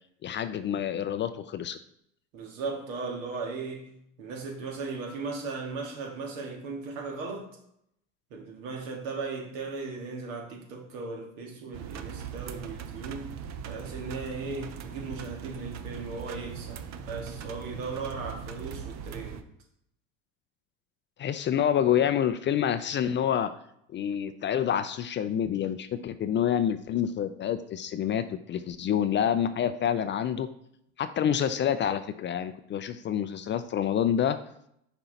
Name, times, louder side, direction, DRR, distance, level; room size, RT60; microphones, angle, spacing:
voice 1, 0.2-1.8 21.2-23.5 23.9-30.5 31.0-34.4, left 9 dB, 30° left, 11 dB, 0.4 m, -27 dB
voice 2, 2.3-3.9 4.2-7.5 8.3-13.3 13.7-16.8 17.1-19.4, right 4 dB, 75° right, 1 dB, 1.8 m, -37 dB
sound 1, 11.7-19.4, right 7 dB, 45° right, 0.7 m, -40 dB
5.7 x 4.4 x 4.0 m, 0.74 s
hypercardioid pair, 75°, 39 cm